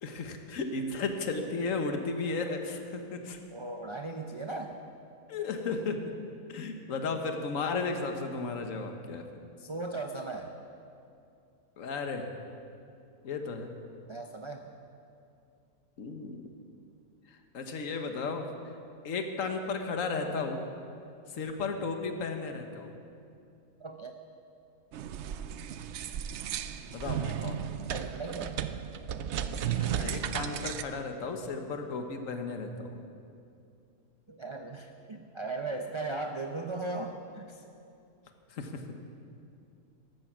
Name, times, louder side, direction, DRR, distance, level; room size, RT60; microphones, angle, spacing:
voice 1, 0.0-3.4 5.3-6.0 6.5-9.3 11.8-12.3 13.2-13.7 16.0-16.5 17.5-18.5 19.0-20.6 21.3-22.9 26.9-27.7 29.6-32.9 38.5-39.0, left 4 dB, 60° left, 5 dB, 1.5 m, -34 dB
voice 2, 3.5-4.8 9.6-10.5 14.1-14.7 23.8-24.2 27.9-28.6 34.3-37.6, right 2 dB, 40° right, 4 dB, 0.4 m, -37 dB
sound 1, 24.9-30.8, right 9 dB, 65° right, 0.7 m, -34 dB
14.5 x 14.0 x 6.1 m, 2.5 s
omnidirectional pair, 1.6 m